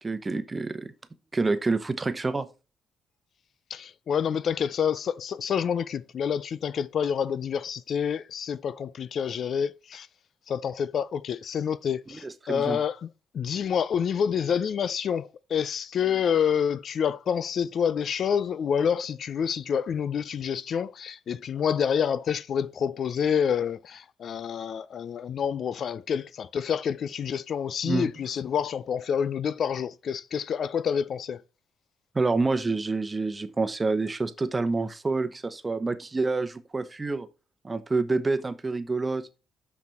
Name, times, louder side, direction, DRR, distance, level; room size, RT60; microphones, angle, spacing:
voice 1, 0.0-0.9 1.3-2.5 12.1-12.8 27.8-28.1 32.1-37.3 37.6-39.3, right 3 dB, 25° right, 0.9 m, -27 dB
voice 2, 3.7-10.1 10.5-13.1 13.3-31.4, left 7 dB, 60° left, 0.4 m, -28 dB
6.0 x 5.9 x 4.2 m
cardioid pair, 90°, 0 cm